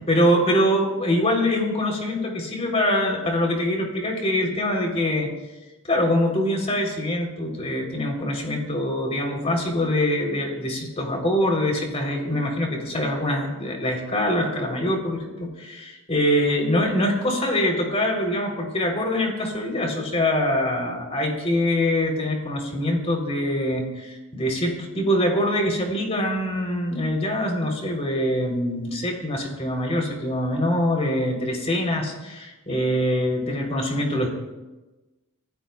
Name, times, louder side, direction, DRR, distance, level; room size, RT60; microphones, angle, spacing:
voice 1, 0.0-5.3 5.8-34.3, left 1 dB, 30° left, 2 dB, 3.4 m, -24 dB
29.5 x 15.0 x 2.3 m, 1.1 s
head